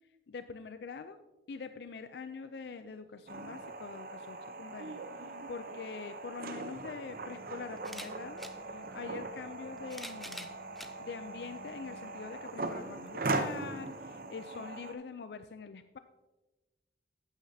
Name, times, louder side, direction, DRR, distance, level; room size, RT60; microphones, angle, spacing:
voice 1, 0.3-1.2 1.5-10.6 11.0-16.0, left 5 dB, 65° left, 10 dB, 0.4 m, -44 dB
Laughter, 2.8-6.5, right 3 dB, 85° right, 0.6 m, -52 dB
sound 1, 3.3-14.9, right 3 dB, 50° right, 0.7 m, -40 dB
sound 2, 7.8-8.6 9.6-10.9 11.7-11.8 13.1-13.2, equal, ahead, 0.5 m, -46 dB
11.5 x 9.0 x 2.8 m, 1.1 s
head